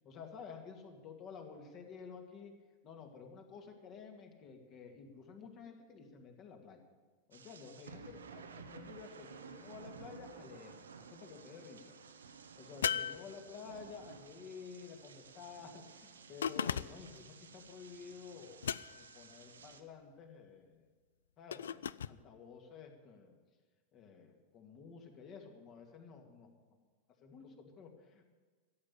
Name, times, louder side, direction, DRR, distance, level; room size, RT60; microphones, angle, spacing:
voice 1, 0.0-2.5 2.8-6.8 7.3-11.9 12.6-18.7 19.0-20.9 21.4-23.4 23.9-26.5 27.2-28.2, left 5 dB, 35° left, 4 dB, 2.1 m, -52 dB
sound 1, 7.3-19.8, right 6 dB, 70° right, 0.9 m, -54 dB
sound 2, 12.8-13.9 16.4-17.2 18.6-19.2 21.5-22.2, left 8 dB, 65° left, 0.3 m, -37 dB
14.0 x 8.2 x 8.7 m, 1.4 s
figure-of-eight pair, 90°, 0 cm